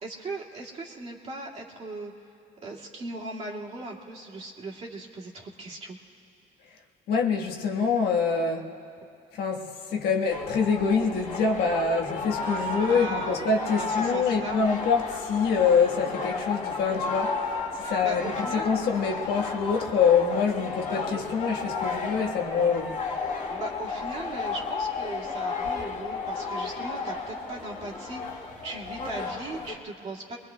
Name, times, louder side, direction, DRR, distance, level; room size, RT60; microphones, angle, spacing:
voice 1, 0.0-2.1 2.6-6.0 12.6-13.5 13.8-14.6 17.8-18.7 23.5-30.4, right 2 dB, 40° right, -3 dB, 2.1 m, -38 dB
voice 2, 7.1-8.7 9.4-17.5 17.9-22.9, left 5 dB, 75° left, 1 dB, 1.3 m, -25 dB
sound 1, 10.3-29.7, left 4 dB, 45° left, 1.8 m, -33 dB
25.0 x 21.5 x 2.2 m, 2.7 s
cardioid pair, 110°, 17 cm